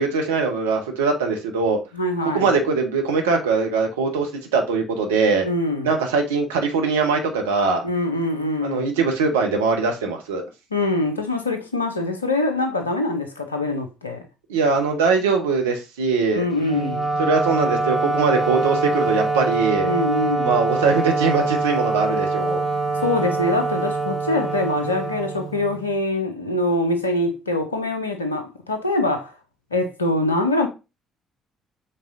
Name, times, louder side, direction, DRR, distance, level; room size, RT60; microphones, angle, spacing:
voice 1, 0.0-1.8 2.3-5.5 5.8-7.8 8.6-10.4 14.5-16.5 17.2-19.9 20.4-22.6, right 4 dB, 75° right, 0.7 m, -21 dB
voice 2, 1.9-2.5 5.4-5.9 7.8-8.9 10.7-14.2 16.3-17.1 19.8-20.5 23.0-29.3 29.7-30.7, left 2 dB, 85° left, 0.5 m, -24 dB
Wind instrument woodwind instrument, 16.6-25.9, right 3 dB, ahead, 1.6 m, -24 dB
5.4 x 3.5 x 2.5 m
figure-of-eight pair, 45°, 0 cm